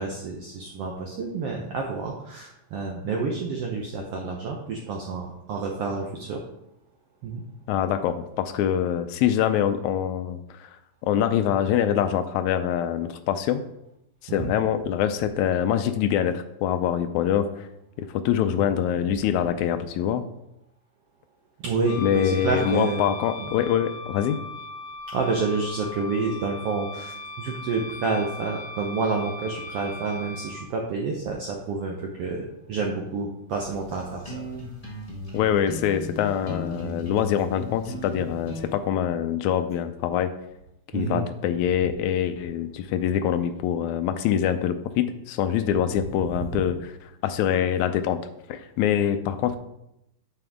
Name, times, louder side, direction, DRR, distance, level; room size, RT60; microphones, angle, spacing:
voice 1, 0.0-6.4 7.2-7.4 14.3-14.5 21.6-23.1 25.1-34.4 40.9-41.2, right 4 dB, 75° right, 0 dB, 1.3 m, -29 dB
voice 2, 7.7-10.8 11.0-13.6 14.2-17.7 18.0-20.2 22.0-24.4 35.3-40.3 40.9-48.2 48.5-49.6, left 9 dB, 80° left, 9 dB, 1.7 m, -24 dB
Wind instrument woodwind instrument, 21.8-30.6, left 2 dB, 65° left, 2.3 m, -39 dB
sound 1, 33.6-38.8, left 1 dB, 30° left, 0.6 m, -37 dB
9.1 x 6.8 x 3.5 m, 0.82 s
omnidirectional pair, 3.8 m